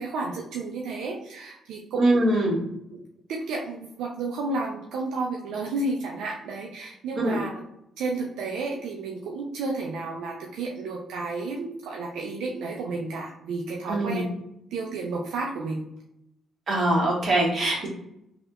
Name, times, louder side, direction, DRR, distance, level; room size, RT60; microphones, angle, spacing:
voice 1, 0.0-2.4 2.9-3.0 3.3-7.5 8.0-14.4 14.7-15.9, right 3 dB, 85° right, -1 dB, 0.4 m, -32 dB
voice 2, 2.0-2.6 7.1-7.4 13.9-14.2 16.7-17.9, right 1 dB, 45° right, -4 dB, 1.5 m, -22 dB
3.4 x 2.8 x 2.3 m, 0.80 s
cardioid pair, 90°, 0 cm